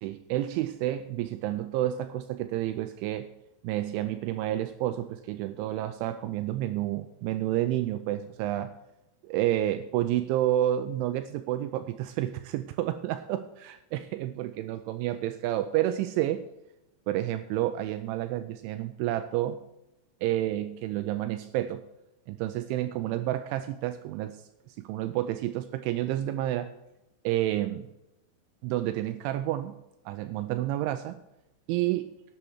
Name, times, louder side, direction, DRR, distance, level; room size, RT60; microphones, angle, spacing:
voice 1, 0.0-3.3 3.6-8.7 9.2-16.4 17.1-19.6 20.2-21.8 22.3-26.7 27.2-27.9 28.6-29.8 30.1-31.2 31.7-32.1, right 13 dB, 85° right, 10 dB, 2.8 m, -30 dB
10.5 x 8.3 x 6.3 m, 0.90 s
omnidirectional pair, 5.8 m